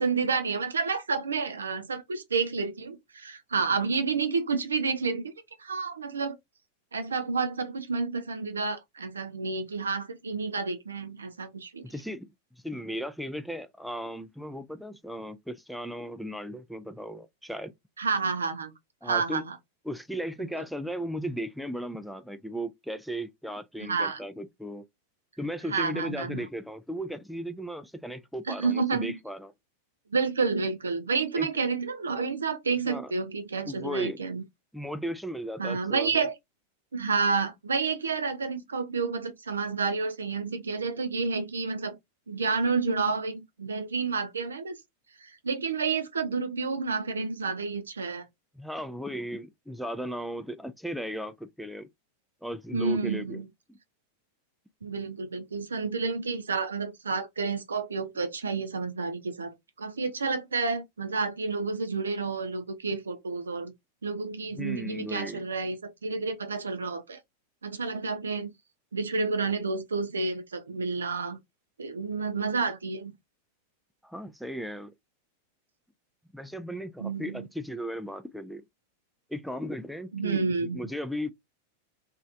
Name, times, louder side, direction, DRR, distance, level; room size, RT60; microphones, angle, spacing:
voice 1, 0.0-5.3 5.6-6.4 6.9-11.9 18.0-18.7 19.0-19.6 23.8-24.2 25.7-26.4 28.5-29.2 30.1-34.4 35.6-36.3 36.9-41.9 42.3-44.8 45.2-48.2 52.7-53.5 54.8-63.7 64.0-67.2 67.6-68.5 68.9-71.4 71.8-73.1 77.0-77.5 80.1-80.8, right 4 dB, 70° right, 0.5 m, -30 dB
voice 2, 11.8-12.3 12.6-17.7 19.0-19.4 19.9-24.8 25.4-29.5 31.4-31.5 32.9-33.1 33.7-34.2 34.7-36.3 48.6-51.9 52.4-53.4 53.7-53.8 64.5-65.4 74.0-74.9 76.3-78.6 79.3-81.3, equal, ahead, 0.3 m, -36 dB
3.0 x 2.4 x 2.4 m
figure-of-eight pair, 90°, 0 cm